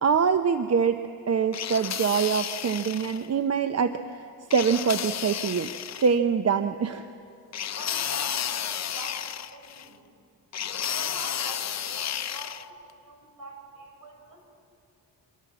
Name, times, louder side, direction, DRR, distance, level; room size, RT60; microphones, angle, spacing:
voice 1, 0.0-4.0 4.5-5.7 6.0-7.1, right 6 dB, 40° right, 9 dB, 0.8 m, -24 dB
sound 1, 1.5-3.3 4.5-6.1 7.5-9.9 10.5-12.7, left 9 dB, 45° left, 0.7 m, -32 dB
voice 2, 7.8-10.0 10.6-14.4, right 1 dB, 60° right, 2 dB, 6.8 m, -44 dB
25.5 x 25.0 x 7.4 m, 2.5 s
cardioid pair, 95°, 38 cm